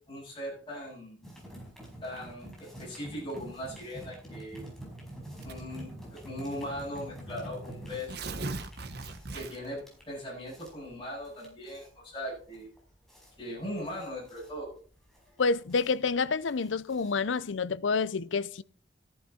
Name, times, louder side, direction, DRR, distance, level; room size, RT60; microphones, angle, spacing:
voice 1, 0.1-1.2 2.0-4.6 5.4-8.2 9.3-12.7 13.4-14.7, equal, 25° left, 7.6 m, -39 dB
sound 1, 1.2-17.5, right 1 dB, ahead, 4.9 m, -47 dB
Tearing, 5.4-5.8 6.7-6.8 7.1-7.2 7.9-9.8, right 3 dB, 55° right, 1.3 m, -38 dB
voice 2, 15.4-18.6, left 4 dB, 80° left, 0.6 m, -28 dB
14.0 x 10.5 x 4.3 m
head